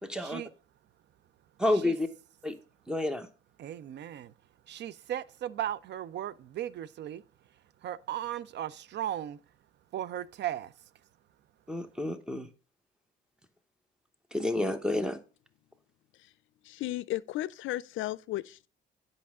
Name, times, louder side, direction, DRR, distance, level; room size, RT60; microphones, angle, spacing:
voice 1, 0.0-0.4 1.6-2.1 2.4-2.5 2.9-3.3 11.7-12.5 14.3-15.2, left 1 dB, 5° right, 0.9 m, -29 dB
voice 2, 3.6-4.3 4.7-7.2 7.8-9.4 9.9-10.7, right 11 dB, 60° right, 0.5 m, -36 dB
voice 3, 16.6-18.7, left 15 dB, 75° left, 0.4 m, -34 dB
8.5 x 5.2 x 3.6 m
cardioid pair, 90°, 20 cm